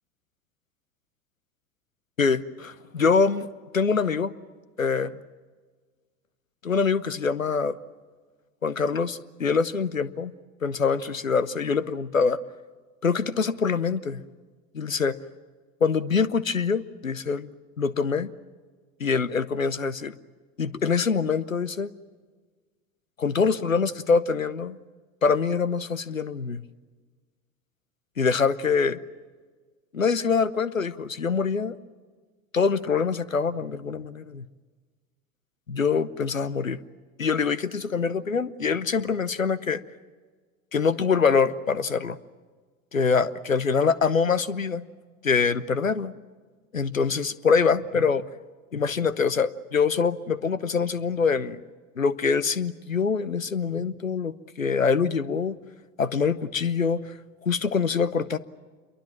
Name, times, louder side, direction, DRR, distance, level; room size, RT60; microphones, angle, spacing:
voice 1, 2.2-3.5 3.7-4.3 4.8-5.1 6.6-7.8 8.6-10.3 10.6-12.4 13.0-14.2 14.7-15.2 15.8-17.5 17.8-18.3 19.0-20.2 20.6-21.9 23.2-24.8 25.2-26.6 28.2-29.0 29.9-31.7 32.5-34.4 35.7-36.8 37.2-39.8 40.7-42.2 42.9-44.8 45.2-46.1 46.7-48.3 48.7-51.6 52.0-55.6 56.0-57.0 57.4-58.4, left 5 dB, 90° left, 19 dB, 0.8 m, -24 dB
27.5 x 23.0 x 7.3 m, 1.5 s
figure-of-eight pair, 70°, 39 cm